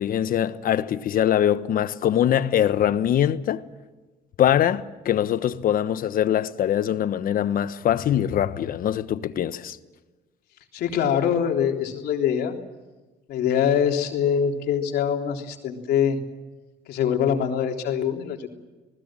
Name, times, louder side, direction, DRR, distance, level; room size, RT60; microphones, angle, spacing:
voice 1, 0.0-3.6 4.4-9.8, left 10 dB, 55° left, 1.2 m, -23 dB
voice 2, 10.7-12.6 13.3-16.2 16.9-18.5, left 8 dB, 70° left, 3.6 m, -23 dB
27.0 x 20.0 x 7.6 m
cardioid pair, 110°, 17 cm